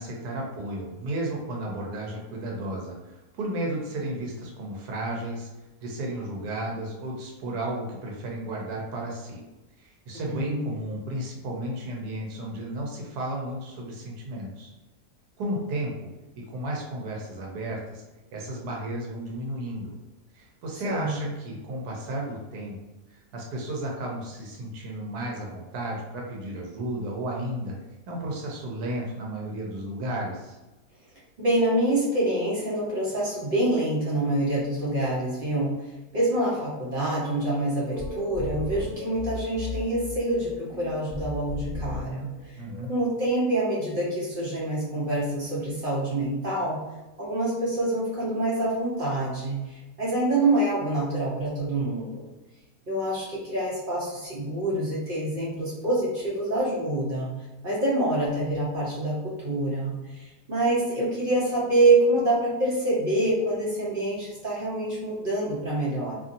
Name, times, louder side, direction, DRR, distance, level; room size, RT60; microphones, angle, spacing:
voice 1, 0.0-5.5 5.8-9.4 9.8-14.7 15.4-16.1 16.4-18.0 18.3-19.9 20.3-22.8 23.1-27.7 28.1-30.6 42.6-42.9, right 1 dB, 75° right, -1 dB, 1.1 m, -33 dB
voice 2, 10.2-10.6 20.8-21.2 31.4-35.7 36.1-42.6 42.9-46.8 47.2-52.3 52.9-57.3 57.6-66.1, right 1 dB, 50° right, -7 dB, 0.7 m, -26 dB
sound 1, 37.9-42.9, left 3 dB, 65° left, 0.7 m, -36 dB
2.9 x 2.6 x 2.5 m, 1.1 s
omnidirectional pair, 1.8 m